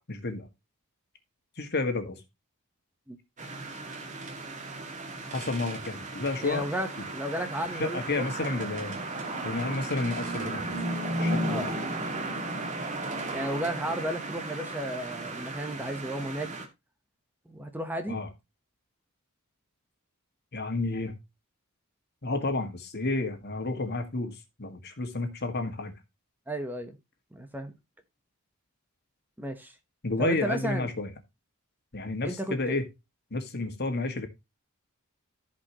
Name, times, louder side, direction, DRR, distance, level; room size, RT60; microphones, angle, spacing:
voice 1, 0.1-0.5 1.6-2.2 5.3-6.7 7.7-9.0 9.4-10.8 11.2-11.7 18.1-18.3 20.5-21.1 22.2-25.9 30.0-31.1 31.9-32.9 33.3-34.3, left 3 dB, 50° left, 1.8 m, -31 dB
sound 1, 3.4-16.7, right 2 dB, 35° right, 2.1 m, -35 dB
voice 2, 6.4-6.9 7.1-8.7 11.4-11.7 13.3-16.6 17.5-18.2 26.5-27.0 27.3-27.7 29.4-29.7 30.2-30.9 32.2-32.8, right 1 dB, 10° right, 1.0 m, -33 dB
15.0 x 5.2 x 3.0 m
head